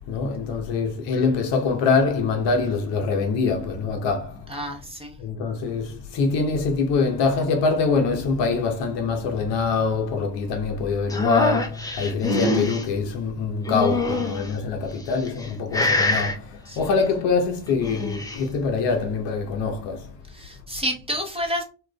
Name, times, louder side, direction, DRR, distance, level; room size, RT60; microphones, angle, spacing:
voice 1, 0.1-4.5 5.2-20.1, left 4 dB, 60° left, 0.8 m, -24 dB
voice 2, 4.5-5.2 16.7-16.8 20.3-21.6, equal, 10° right, 0.9 m, -29 dB
sound 1, 11.1-12.8 13.7-14.5 15.1-15.5 15.7-16.3 17.7-18.4, left 2 dB, 10° left, 0.6 m, -24 dB
2.9 x 2.3 x 2.2 m
hypercardioid pair, 50°, 49 cm